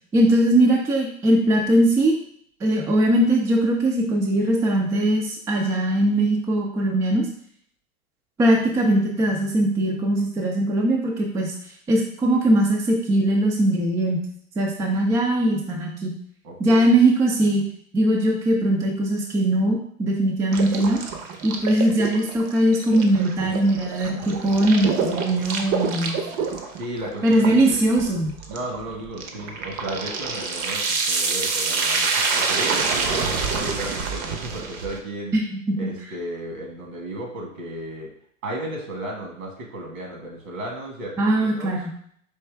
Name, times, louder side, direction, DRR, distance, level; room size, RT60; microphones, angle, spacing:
voice 1, 0.1-2.1 2.6-7.3 8.4-11.5 11.9-14.2 14.6-16.1 16.6-17.6 17.9-21.0 21.4-26.1 27.2-28.3 35.3-35.9 41.2-41.9, right 1 dB, 10° right, 0 dB, 0.3 m, -20 dB
voice 2, 16.4-16.9 26.7-27.9 28.5-35.4 35.8-38.1 38.4-41.8, right 1 dB, 70° right, -1 dB, 1.8 m, -34 dB
sound 1, 20.5-35.0, right 4 dB, 35° right, 0.7 m, -27 dB
4.5 x 3.1 x 3.3 m, 0.64 s
hypercardioid pair, 100°, 42 cm